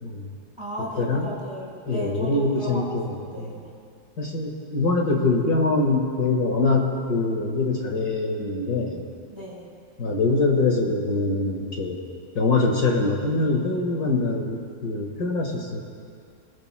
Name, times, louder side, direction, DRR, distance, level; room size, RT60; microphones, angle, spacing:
voice 1, 0.6-3.6 9.3-9.7, equal, 15° right, -5 dB, 4.7 m, -35 dB
voice 2, 1.9-3.6 4.2-9.0 10.0-12.0 12.4-15.8, left 3 dB, 60° left, -1 dB, 2.2 m, -24 dB
29.5 x 20.5 x 2.2 m, 2.3 s
omnidirectional pair, 1.9 m